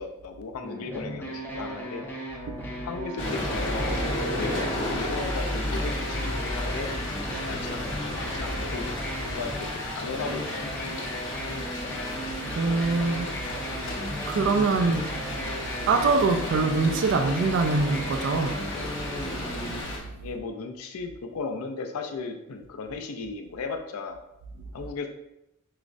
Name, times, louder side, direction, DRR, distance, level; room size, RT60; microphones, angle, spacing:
voice 1, 0.0-2.1 2.8-6.9 7.5-11.2 11.4-12.2 20.2-24.2 24.7-25.1, left 4 dB, 90° left, 5 dB, 0.4 m, -36 dB
sound 1, 0.6-19.8, equal, 10° left, 0.5 m, -36 dB
sound 2, 3.2-20.0, left 1 dB, 60° left, 0.9 m, -33 dB
voice 2, 12.5-13.3 13.8-13.9 14.3-15.1 15.8-18.6 18.9-19.0 19.3-19.6, right 3 dB, 60° right, 5 dB, 0.3 m, -24 dB
4.7 x 2.0 x 2.5 m, 0.86 s
head